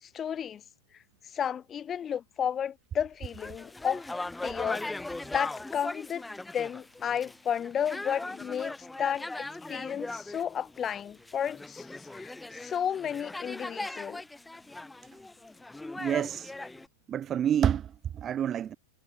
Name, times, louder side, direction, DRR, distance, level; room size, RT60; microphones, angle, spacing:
voice 1, 0.0-0.6 1.3-4.1 4.4-4.8 5.3-6.2 6.5-11.9 12.1-14.2, left 8 dB, 25° left, 3.5 m, -32 dB
sound 1, 3.2-16.9, left 2 dB, 5° left, 4.1 m, -39 dB
voice 2, 16.0-16.5 17.1-18.8, right 9 dB, 30° right, 0.6 m, -28 dB
hypercardioid pair, 100°, 0 cm